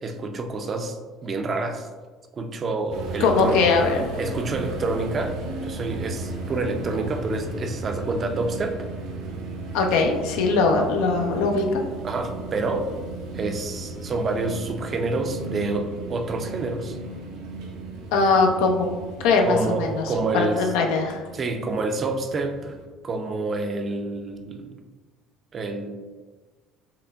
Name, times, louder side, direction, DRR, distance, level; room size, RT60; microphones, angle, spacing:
voice 1, 0.0-1.9 2.3-3.6 4.2-8.8 12.0-12.9 13.3-17.0 19.4-20.6 21.3-22.8 23.0-24.7 25.5-25.9, right 3 dB, 40° right, 6 dB, 0.5 m, -28 dB
sound 1, 2.9-22.9, right 3 dB, 85° right, 0.8 m, -35 dB
voice 2, 3.2-4.0 9.7-11.8 18.1-18.9 19.2-20.0 20.3-21.2, left 4 dB, 85° left, 2 dB, 0.6 m, -21 dB
5.7 x 2.1 x 3.4 m, 1.4 s
supercardioid pair, 100°, 0 cm